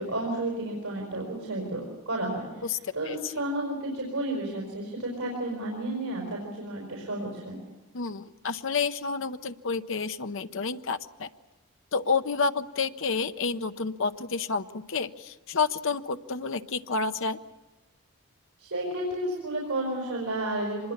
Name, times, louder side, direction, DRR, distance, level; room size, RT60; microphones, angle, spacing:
voice 1, 0.0-2.7 2.9-7.6 18.6-20.9, right 1 dB, 80° right, -2 dB, 5.2 m, -32 dB
voice 2, 2.6-3.4 7.9-11.3 11.9-17.4, left 4 dB, 60° left, 10 dB, 0.8 m, -30 dB
25.0 x 21.0 x 7.3 m, 1.1 s
head